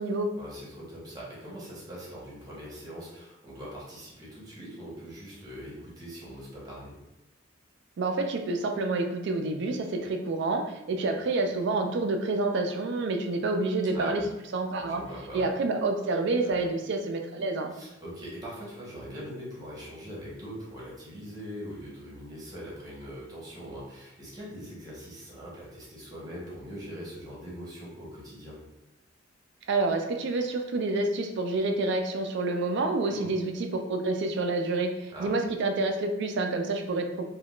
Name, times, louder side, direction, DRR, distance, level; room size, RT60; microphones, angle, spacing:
voice 1, 0.4-6.9 13.9-14.2 14.7-15.5 16.4-16.6 17.7-28.6 33.0-33.3 35.1-35.3, equal, 20° right, -6 dB, 1.0 m, -42 dB
voice 2, 8.0-14.2 14.5-15.0 15.3-17.7 29.7-37.3, right 2 dB, 65° right, 5 dB, 0.4 m, -28 dB
3.5 x 2.3 x 2.3 m, 0.93 s
head